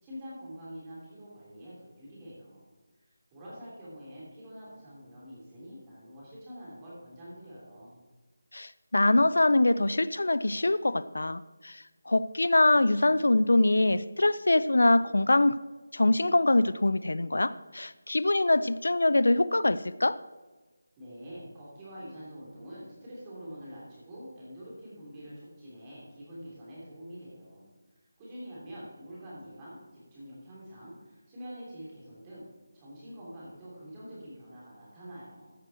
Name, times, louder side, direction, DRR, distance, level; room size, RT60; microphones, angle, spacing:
voice 1, 0.0-2.7 3.0-7.9 21.0-27.7 28.2-32.4 32.7-35.5, equal, 15° right, -7 dB, 3.2 m, -46 dB
voice 2, 8.5-15.6 15.9-20.2, left 2 dB, 85° left, 16 dB, 0.4 m, -24 dB
14.5 x 6.3 x 4.3 m, 1.2 s
figure-of-eight pair, 175°, 0 cm